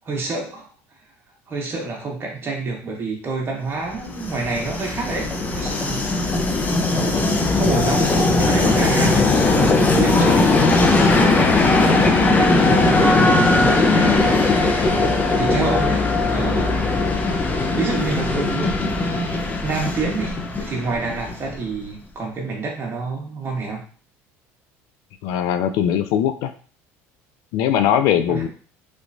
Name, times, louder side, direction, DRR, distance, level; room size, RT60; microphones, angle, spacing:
voice 1, 0.0-0.7 1.5-8.1 8.4-10.4 11.0-14.3 15.3-16.9 17.2-17.5 17.7-19.3 19.6-23.8 28.3-28.5, right 3 dB, 35° right, -1 dB, 1.3 m, -28 dB
Train, 3.9-21.7, left 3 dB, 25° left, 0.6 m, -19 dB
voice 2, 25.2-26.5 27.5-28.5, left 10 dB, 70° left, 9 dB, 0.4 m, -20 dB
3.3 x 3.0 x 2.6 m, 0.41 s
supercardioid pair, 105°, 7 cm